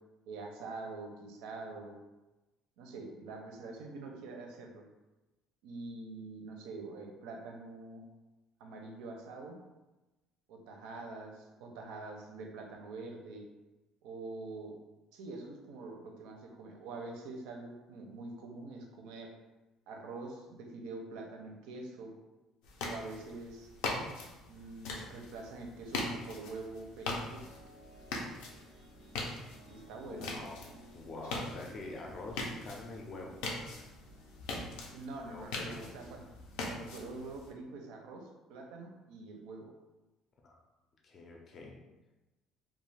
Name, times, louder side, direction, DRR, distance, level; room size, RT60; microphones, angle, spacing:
voice 1, 0.3-2.0 2.8-4.8 5.6-8.1 8.6-9.6 10.5-13.4 14.0-14.8 15.1-19.3 19.9-22.1 22.9-23.7 24.5-27.5 29.7-30.3 34.9-36.3 36.7-39.7, right 3 dB, 90° right, 2 dB, 0.5 m, -45 dB
sound 1, 22.6-37.5, left 2 dB, 90° left, 0.5 m, -42 dB
sound 2, 26.6-37.2, right 2 dB, 35° right, 0.4 m, -59 dB
voice 2, 30.1-30.6 30.9-33.4 35.2-35.8 40.4-40.6 41.0-41.8, left 3 dB, 30° left, 0 dB, 0.4 m, -45 dB
2.3 x 2.3 x 3.2 m, 1.1 s
cardioid pair, 155°, 0 cm